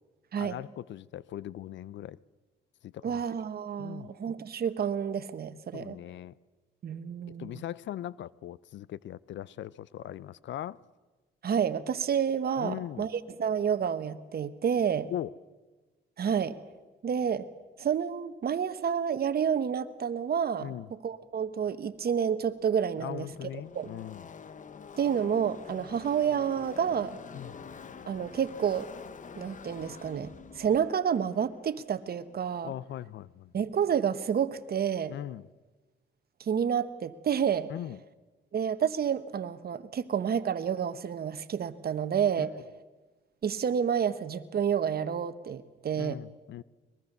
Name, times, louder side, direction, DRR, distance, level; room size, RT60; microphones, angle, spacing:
voice 1, 0.4-2.2 2.8-3.2 3.8-4.1 5.7-6.3 7.3-10.8 12.6-13.1 15.1-15.3 20.6-20.9 23.0-24.3 27.3-27.6 32.6-33.5 35.1-35.5 37.7-38.0 45.9-46.6, left 12 dB, 65° left, 0.6 m, -39 dB
voice 2, 3.0-6.0 6.8-7.6 11.4-15.1 16.2-16.6 17.0-17.5 17.8-23.5 23.7-23.9 24.9-27.2 28.1-28.9 29.3-32.7 33.5-35.1 36.4-37.7 38.5-42.5 43.4-46.2, right 8 dB, 50° right, 1.3 m, -29 dB
Car passing by / Race car auto racing, 22.1-22.2 22.3-32.9, left 6 dB, 40° left, 1.1 m, -47 dB
22.5 x 21.5 x 6.8 m
cardioid pair, 90°, 20 cm